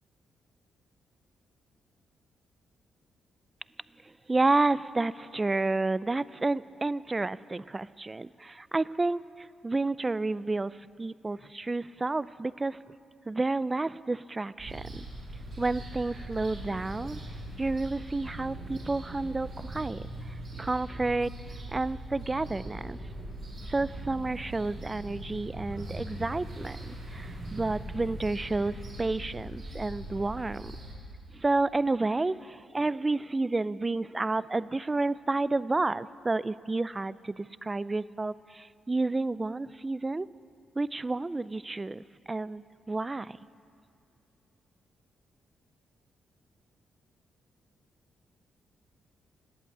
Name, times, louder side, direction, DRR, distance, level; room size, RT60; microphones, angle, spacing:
voice 1, 4.0-12.8 13.3-15.1 15.6-17.2 17.6-23.0 23.7-30.7 31.3-40.3 40.8-43.4, right 2 dB, 20° right, 18 dB, 0.3 m, -30 dB
sound 1, 14.6-30.9, right 1 dB, 60° right, 5.4 m, -41 dB
19.5 x 8.3 x 8.7 m, 2.4 s
cardioid pair, 85°, 0 cm